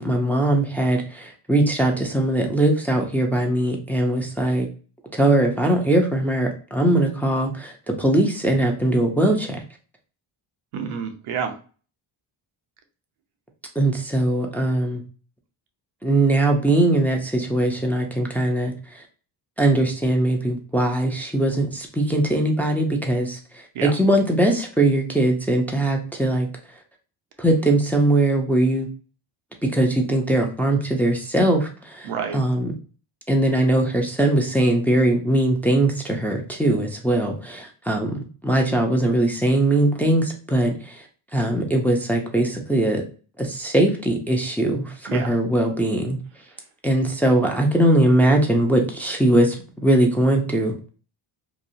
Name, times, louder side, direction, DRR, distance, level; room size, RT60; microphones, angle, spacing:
voice 1, 0.0-4.7 5.1-9.6 13.8-15.0 16.0-19.0 19.6-26.5 27.4-28.9 29.6-32.1 32.3-32.7 33.3-41.0 41.3-43.0 43.4-46.2 46.8-49.6 49.8-50.7, right 1 dB, 5° left, 1 dB, 0.4 m, -21 dB
voice 2, 10.7-11.5 23.7-24.0 32.0-32.4 45.1-45.4, right 6 dB, 85° right, 5 dB, 0.7 m, -28 dB
2.9 x 2.0 x 2.6 m, 0.38 s
cardioid pair, 80°, 49 cm